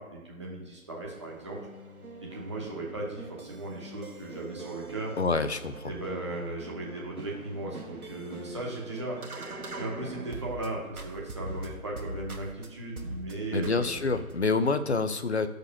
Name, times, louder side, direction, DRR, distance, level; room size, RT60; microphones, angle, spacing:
voice 1, 0.0-1.6 2.2-5.2 5.8-9.2 9.8-14.0, right 2 dB, 20° right, -4 dB, 1.0 m, -37 dB
sound 1, 0.9-10.7 11.0-12.7 13.0-13.3 13.6-14.4, right 1 dB, 80° right, 1.2 m, -43 dB
voice 2, 5.2-5.9 13.5-15.5, left 4 dB, 50° left, 11 dB, 0.5 m, -27 dB
5.2 x 4.2 x 5.8 m, 1.2 s
figure-of-eight pair, 160°, 43 cm